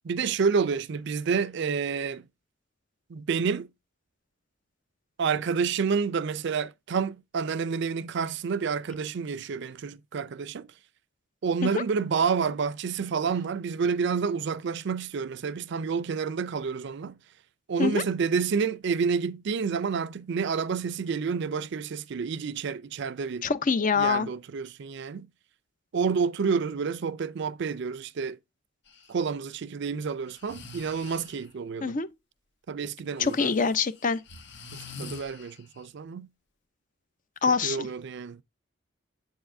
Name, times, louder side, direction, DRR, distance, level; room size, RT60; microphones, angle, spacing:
voice 1, 0.0-2.3 3.1-3.7 5.2-10.7 11.4-17.2 17.7-23.5 24.0-25.3 25.9-28.4 29.1-32.0 32.7-33.5 35.0-36.3 37.6-38.4, right 5 dB, 60° right, 0.4 m, -29 dB
voice 2, 23.4-24.3 31.8-32.1 33.2-34.2 37.4-37.9, left 5 dB, 40° left, 0.6 m, -25 dB
Breathing, 28.9-29.1 30.2-31.5 33.2-35.9, left 4 dB, 60° left, 1.1 m, -45 dB
7.9 x 6.9 x 2.6 m
head